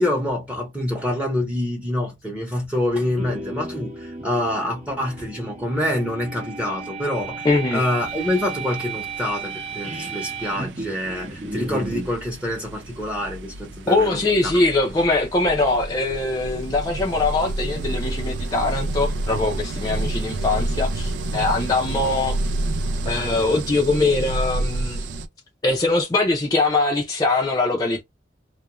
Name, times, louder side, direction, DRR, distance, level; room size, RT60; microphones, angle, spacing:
voice 1, 0.0-14.5, left 1 dB, 5° right, 0.8 m, -26 dB
sound 1, 3.0-12.1, right 3 dB, 40° right, 0.8 m, -34 dB
voice 2, 7.4-7.8 13.9-22.4 23.1-25.0 25.6-28.0, left 3 dB, 20° left, 0.5 m, -22 dB
sound 2, 7.5-7.6 8.0-25.3, right 2 dB, 75° right, 0.4 m, -30 dB
2.4 x 2.1 x 2.9 m
head